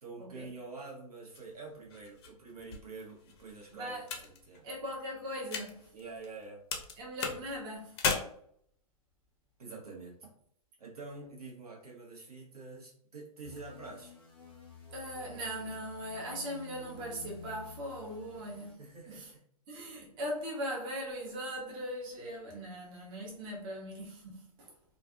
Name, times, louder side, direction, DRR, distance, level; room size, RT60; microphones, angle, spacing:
voice 1, 0.0-4.7 5.9-6.6 9.6-10.3 10.8-14.2 18.8-19.4, right 3 dB, 75° right, 1.0 m, -47 dB
sound 1, 1.3-6.4 6.7-8.1, left 5 dB, 40° left, 0.5 m, -38 dB
voice 2, 3.7-4.0 4.6-5.9 7.0-8.0 14.9-19.3 19.7-24.7, equal, 25° right, 0.7 m, -40 dB
sound 2, 13.4-18.7, left 4 dB, 5° left, 0.8 m, -51 dB
2.4 x 2.4 x 2.4 m
figure-of-eight pair, 125°, 19 cm